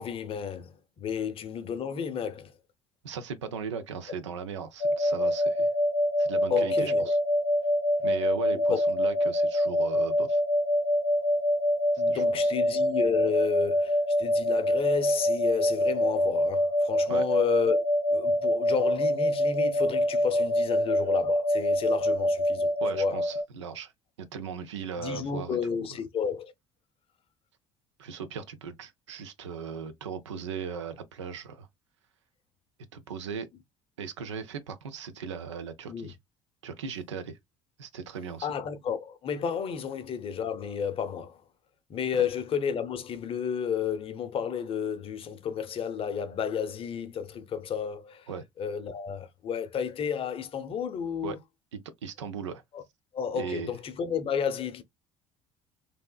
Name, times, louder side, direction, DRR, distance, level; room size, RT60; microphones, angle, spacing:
voice 1, 0.0-2.5 6.5-7.1 8.5-8.8 12.0-17.8 18.1-23.2 25.0-26.5 35.9-36.1 38.4-41.4 41.9-48.3 48.6-51.4 52.7-52.8 53.1-54.8, left 7 dB, 40° left, 0.6 m, -32 dB
voice 2, 3.0-5.7 6.2-7.2 8.0-10.4 12.1-12.5 17.1-17.2 22.8-23.9 24.2-25.6 28.0-31.7 32.9-33.5 34.0-36.2 36.6-37.4 37.8-38.5 48.3-48.5 51.2-51.4 51.7-52.6 53.3-53.7, right 6 dB, 75° right, 0.5 m, -38 dB
sound 1, 4.8-23.4, left 1 dB, 85° left, 0.5 m, -25 dB
3.4 x 2.7 x 2.3 m
figure-of-eight pair, 55°, 15 cm